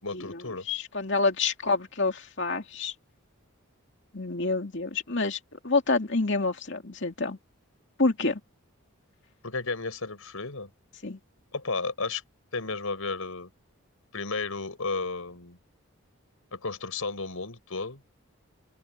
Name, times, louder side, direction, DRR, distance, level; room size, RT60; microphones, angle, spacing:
voice 1, 0.0-0.6 9.4-10.7 11.5-12.2 12.5-13.5 14.1-15.6 16.5-18.0, left 3 dB, 75° left, 4.5 m, -33 dB
voice 2, 0.7-2.9 4.1-5.4 5.6-7.4 8.0-8.4 11.0-11.2, left 3 dB, 55° left, 2.7 m, -27 dB
open air
head